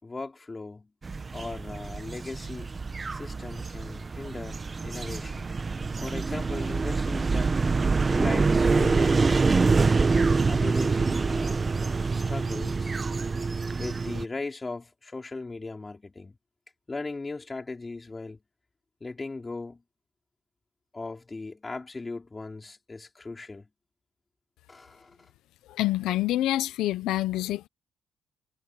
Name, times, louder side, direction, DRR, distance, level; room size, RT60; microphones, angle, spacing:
voice 1, 0.0-0.9 1.3-2.7 3.1-5.5 6.0-7.6 8.1-10.0 10.5-11.6 12.1-13.4 13.8-16.3 16.9-18.4 19.0-19.8 20.9-23.7 24.7-25.2, left 3 dB, 25° left, 5.0 m, -38 dB
sound 1, 1.0-14.3, right 4 dB, 30° right, 1.2 m, -26 dB
voice 2, 25.7-27.7, left 15 dB, 90° left, 0.8 m, -27 dB
cardioid pair, 90°, 0 cm